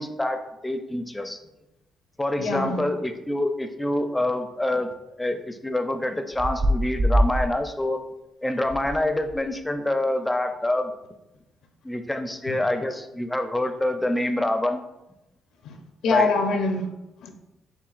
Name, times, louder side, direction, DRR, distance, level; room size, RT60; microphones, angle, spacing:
voice 1, 0.0-1.4 2.2-4.9 5.2-8.0 8.4-10.9 11.8-14.8 16.1-16.3, left 1 dB, 10° left, 7 dB, 0.4 m, -26 dB
voice 2, 2.4-2.8 12.5-12.6 15.6-15.7 16.0-16.8 17.2-17.3, left 3 dB, 80° left, 4 dB, 0.6 m, -24 dB
sound 1, 6.3-7.5 8.6-9.0 9.2-9.5, equal, 45° right, 0.8 m, -23 dB
6.9 x 2.4 x 2.4 m, 0.96 s
cardioid pair, 90°, 0 cm